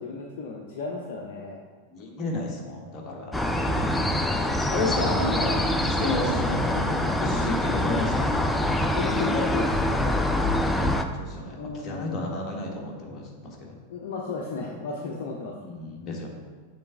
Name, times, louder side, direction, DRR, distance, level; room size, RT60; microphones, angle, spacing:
voice 1, 0.0-1.7 5.1-5.2 8.9-10.2 11.5-12.3 13.9-15.5, left 4 dB, 50° left, -1 dB, 0.7 m, -34 dB
voice 2, 1.9-3.9 4.7-8.4 11.1-13.8 15.6-16.3, left 2 dB, 25° left, -1 dB, 1.4 m, -32 dB
sound 1, 3.3-11.1, left 1 dB, 5° left, 0.4 m, -25 dB
sound 2, 5.0-10.9, right 3 dB, 25° right, 1.3 m, -41 dB
7.0 x 3.4 x 5.7 m, 1.5 s
figure-of-eight pair, 90°, 0 cm